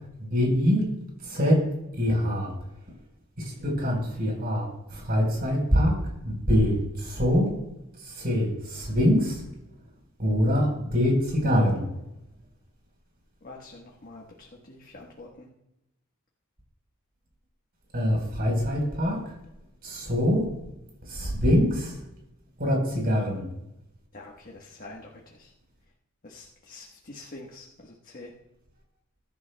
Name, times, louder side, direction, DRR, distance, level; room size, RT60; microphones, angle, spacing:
voice 1, 0.2-0.8 1.2-1.6 1.9-2.5 3.6-6.0 6.2-7.5 8.0-9.4 10.2-11.9 17.9-19.2 19.8-20.4 21.1-22.0 22.6-23.5, equal, 45° right, 0 dB, 4.4 m, -24 dB
voice 2, 13.4-15.5 24.1-25.5 26.2-28.3, left 2 dB, 45° left, -2 dB, 1.4 m, -46 dB
21.5 x 11.5 x 2.3 m, 0.89 s
head